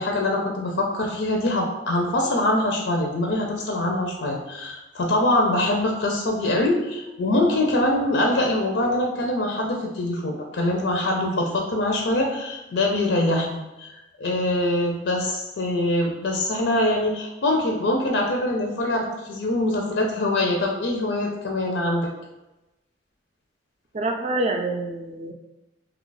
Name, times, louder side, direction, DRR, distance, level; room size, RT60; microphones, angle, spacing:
voice 1, 0.0-13.9 14.2-22.1, left 1 dB, 80° left, 1 dB, 0.5 m, -23 dB
voice 2, 23.9-25.3, right 2 dB, 35° right, 3 dB, 0.3 m, -26 dB
2.8 x 2.3 x 3.9 m, 0.99 s
head